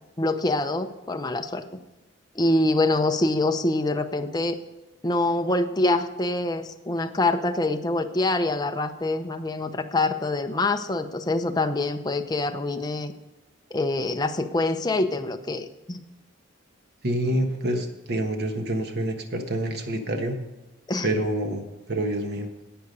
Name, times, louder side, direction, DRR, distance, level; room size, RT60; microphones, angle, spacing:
voice 1, 0.2-1.8 2.4-4.6 5.0-13.1 13.7-16.0 20.9-21.1, left 2 dB, 20° left, 6 dB, 0.7 m, -25 dB
voice 2, 17.0-20.4 21.0-22.5, right 1 dB, 55° right, 5 dB, 1.4 m, -27 dB
11.5 x 8.4 x 5.4 m, 1.1 s
head